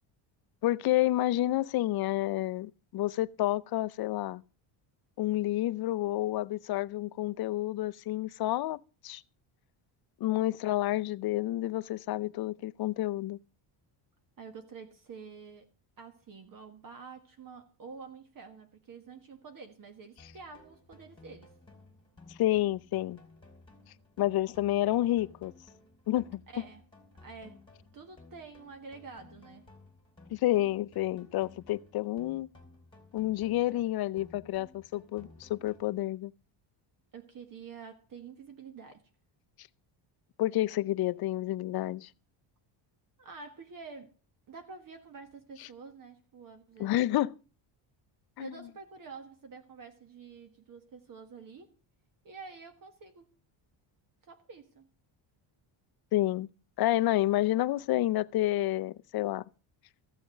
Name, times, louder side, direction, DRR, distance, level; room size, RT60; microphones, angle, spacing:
voice 1, 0.6-4.4 5.2-9.2 10.2-13.4 22.4-23.2 24.2-25.5 26.1-26.4 30.3-32.5 33.1-36.3 40.4-42.1 46.8-47.3 48.4-48.5 56.1-56.5 56.8-59.4, left 15 dB, 50° left, 0.5 m, -29 dB
voice 2, 14.4-15.7 16.0-21.5 26.5-26.8 27.2-27.6 27.9-29.7 37.1-39.1 43.2-44.1 44.5-47.0 48.4-51.7 52.2-53.3 54.2-54.9, right 5 dB, 40° right, 1.5 m, -48 dB
sound 1, 20.2-36.2, left 3 dB, 10° left, 2.6 m, -56 dB
14.5 x 6.9 x 6.5 m
cardioid pair, 145°, 50 cm